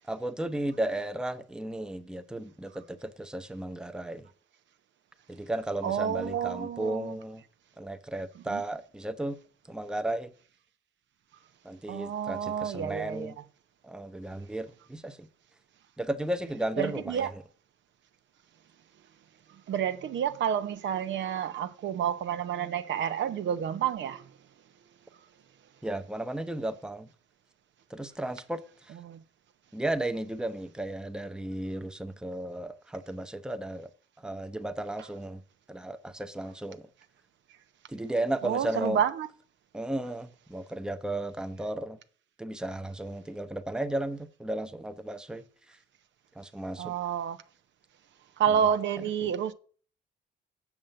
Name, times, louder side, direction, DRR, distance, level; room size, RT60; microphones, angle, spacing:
voice 1, 0.1-4.3 5.3-7.4 7.8-9.4 9.7-10.3 11.6-13.4 13.8-15.3 16.0-17.4 25.8-27.1 27.9-28.9 29.7-33.9 34.2-35.4 35.7-36.9 37.9-39.0 39.7-42.0 42.4-45.4 46.4-46.9 49.2-49.3, right 1 dB, 5° right, 0.8 m, -34 dB
voice 2, 5.8-7.2 8.4-8.6 11.9-13.3 16.8-17.3 19.5-24.3 29.0-29.2 38.4-39.3 46.8-47.4 48.4-49.5, right 8 dB, 70° right, 0.8 m, -30 dB
7.3 x 6.4 x 7.8 m
cardioid pair, 90°, 20 cm